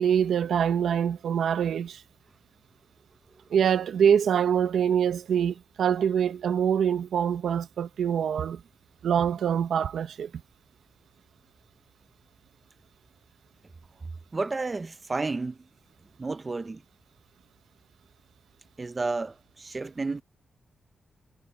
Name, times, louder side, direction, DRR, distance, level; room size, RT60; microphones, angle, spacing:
voice 1, 0.0-2.0 3.5-8.6 9.0-10.3, right 8 dB, 80° right, 0.9 m, -24 dB
voice 2, 14.3-15.6 16.2-16.8 18.8-20.2, right 3 dB, 25° right, 0.6 m, -31 dB
wide cardioid pair, 140°, 0 cm